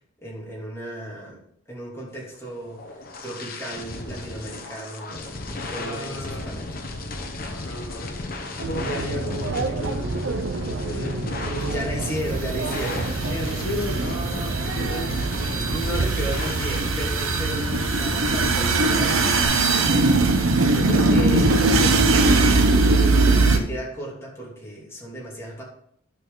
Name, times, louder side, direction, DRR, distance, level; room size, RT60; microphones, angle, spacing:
voice 1, 0.2-1.4 1.7-2.8 3.2-6.7 9.1-9.2 11.6-13.6 14.1-14.4 15.7-25.6, right 1 dB, 15° left, -5 dB, 2.8 m, -35 dB
sound 1, 2.5-19.4, left 2 dB, 45° left, 1.1 m, -35 dB
voice 2, 5.8-6.5 7.5-8.2 8.6-10.1 10.7-11.8 13.2-15.2, equal, 65° left, 1 dB, 1.3 m, -34 dB
sound 2, 8.6-16.1, right 3 dB, 65° right, 0.6 m, -30 dB
sound 3, 11.6-23.6, right 3 dB, 90° right, 1.0 m, -21 dB
10.5 x 6.2 x 3.9 m, 0.68 s
head